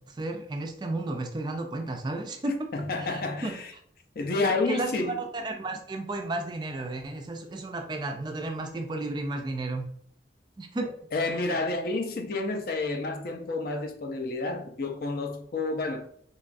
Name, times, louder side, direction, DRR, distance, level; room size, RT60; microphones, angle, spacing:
voice 1, 0.1-2.7 3.0-3.6 4.4-9.9 10.6-10.9 11.3-11.4, right 2 dB, 25° right, 0.3 m, -33 dB
voice 2, 2.7-3.7 4.2-5.2 11.1-16.1, left 3 dB, 50° left, 0.4 m, -30 dB
3.8 x 2.3 x 2.5 m
head